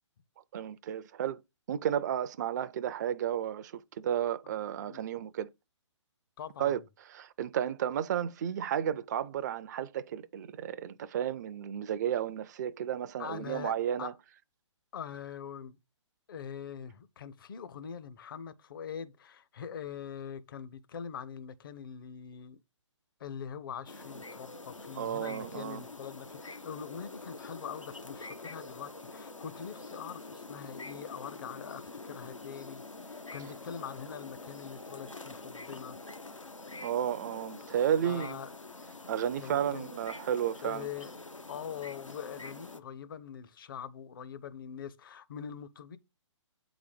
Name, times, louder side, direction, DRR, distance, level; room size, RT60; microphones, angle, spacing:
voice 1, 0.5-1.4 1.7-5.5 6.6-6.8 7.1-14.1 25.0-25.9 36.8-38.4 39.1-40.9, right 9 dB, 35° right, 0.4 m, -32 dB
voice 2, 6.4-6.8 13.2-14.1 14.9-15.8 16.3-22.6 23.2-36.0 38.0-38.5 39.4-39.9 40.6-41.2 41.5-46.0, left 8 dB, 45° left, 0.8 m, -43 dB
sound 1, 23.9-42.8, left 3 dB, 85° left, 1.0 m, -46 dB
8.5 x 4.0 x 5.0 m
figure-of-eight pair, 130°, 16 cm